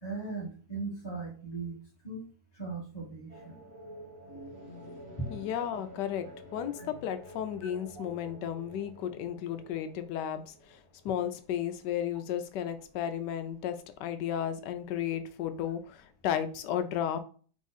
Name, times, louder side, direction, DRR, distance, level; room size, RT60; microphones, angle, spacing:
voice 1, 0.0-1.8 2.0-2.2 2.5-3.6, right 4 dB, 20° left, -4 dB, 1.0 m, -38 dB
sound 1, 3.3-11.3, equal, 50° right, 1.7 m, -49 dB
voice 2, 5.3-17.2, left 9 dB, 90° left, 9 dB, 1.2 m, -34 dB
3.7 x 3.5 x 4.0 m, 0.42 s
omnidirectional pair, 1.8 m